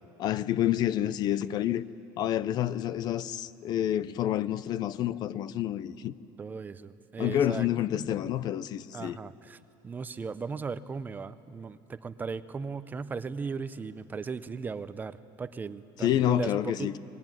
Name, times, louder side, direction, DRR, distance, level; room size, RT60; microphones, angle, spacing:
voice 1, 0.2-1.8 2.2-6.1 7.2-9.2 16.0-17.0, left 11 dB, 40° left, 0.6 m, -28 dB
voice 2, 6.4-7.7 8.9-16.9, right 5 dB, 15° right, 0.6 m, -37 dB
25.0 x 20.5 x 9.2 m
cardioid pair, 155°, 10 cm